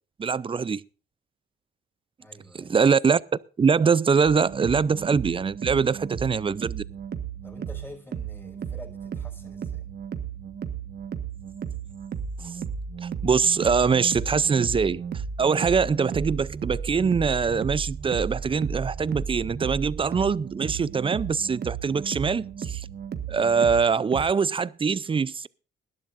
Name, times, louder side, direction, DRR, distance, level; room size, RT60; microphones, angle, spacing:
voice 1, 0.2-0.8 2.5-3.2 3.6-6.8 13.0-15.0 15.4-22.9 23.3-25.5, right 5 dB, 25° right, 0.5 m, -23 dB
voice 2, 2.2-2.9 7.4-9.9, left 1 dB, 10° left, 5.9 m, -47 dB
sound 1, 4.3-24.2, right 7 dB, 55° right, 1.4 m, -34 dB
20.0 x 12.0 x 2.6 m
cardioid pair, 90°, 20 cm